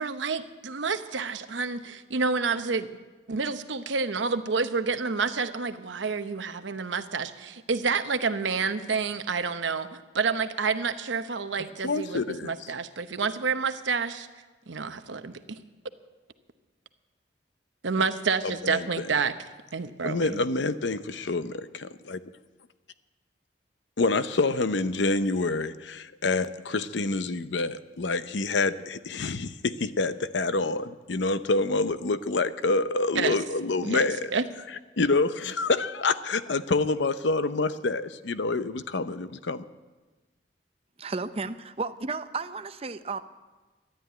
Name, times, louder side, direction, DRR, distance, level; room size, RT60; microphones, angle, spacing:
voice 1, 0.0-2.9 3.3-14.3 14.7-15.6 17.8-19.4 19.7-20.5 33.1-33.4 33.8-34.4, right 5 dB, 85° right, 10 dB, 0.9 m, -29 dB
voice 2, 11.8-12.5 18.0-18.1 18.4-19.0 20.0-22.2 24.0-34.3 35.0-39.6, left 3 dB, 75° left, 13 dB, 0.7 m, -27 dB
voice 3, 41.0-43.2, right 4 dB, 30° right, 11 dB, 0.6 m, -33 dB
13.0 x 11.5 x 9.2 m, 1.3 s
head